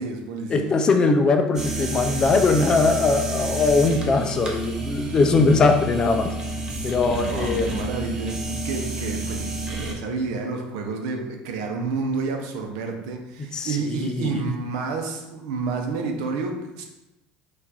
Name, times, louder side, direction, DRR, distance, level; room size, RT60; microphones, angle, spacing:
voice 1, 0.0-0.7 7.0-16.8, right 4 dB, 85° right, 3 dB, 0.8 m, -30 dB
voice 2, 0.5-6.3 6.8-7.8 13.5-14.4, left 3 dB, 25° left, 6 dB, 0.4 m, -21 dB
sound 1, 1.5-9.9, right 2 dB, 20° right, 0.7 m, -30 dB
4.5 x 2.5 x 4.1 m, 0.94 s
cardioid pair, 145°, 3 cm